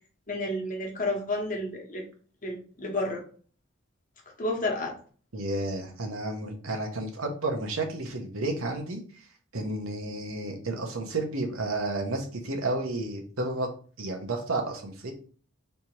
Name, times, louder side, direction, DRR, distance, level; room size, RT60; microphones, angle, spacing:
voice 1, 0.3-2.0 2.4-3.2 4.4-4.9, left 1 dB, 40° left, 0 dB, 1.1 m, -30 dB
voice 2, 5.3-9.0 9.5-13.7 14.0-15.1, right 2 dB, 90° right, 3 dB, 1.0 m, -31 dB
3.4 x 2.8 x 4.4 m, 0.41 s
head